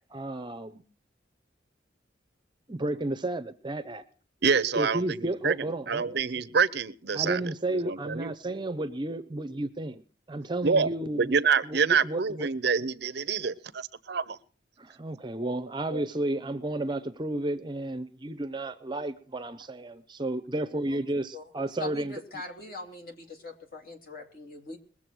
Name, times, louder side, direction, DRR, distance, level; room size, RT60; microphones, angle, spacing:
voice 1, 0.1-0.8 2.7-4.0 4.7-6.0 7.1-10.0 10.3-11.3 11.6-12.5 14.8-22.1, right 1 dB, 25° right, 12 dB, 0.7 m, -32 dB
voice 2, 4.4-5.6 5.9-7.4 7.7-8.3 10.6-10.9 11.1-14.4 15.4-15.5 15.9-16.0, right 5 dB, 60° right, 16 dB, 0.6 m, -27 dB
voice 3, 21.8-24.8, left 3 dB, 50° left, 3 dB, 3.1 m, -41 dB
21.5 x 7.4 x 6.2 m, 0.42 s
head